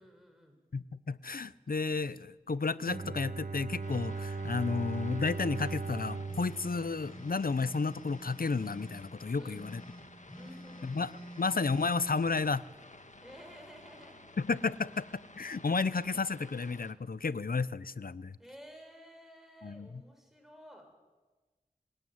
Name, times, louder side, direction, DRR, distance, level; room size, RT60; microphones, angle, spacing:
voice 1, 0.0-0.6 9.4-9.7 10.4-10.9 13.2-14.2 18.4-20.9, equal, ahead, 3 dB, 7.2 m, -53 dB
voice 2, 0.7-9.8 10.8-11.1 11.4-12.6 14.4-15.1 15.4-18.4 19.6-19.9, left 4 dB, 80° left, 17 dB, 0.7 m, -32 dB
Bowed string instrument, 2.8-7.8, right 4 dB, 70° right, 1.3 m, -39 dB
sound 1, 3.8-16.9, left 2 dB, 55° left, 1.8 m, -54 dB
sound 2, 6.2-9.1 9.5-12.3, right 1 dB, 30° left, 7.4 m, -49 dB
26.5 x 19.5 x 9.6 m, 1.3 s
wide cardioid pair, 50°, 15 cm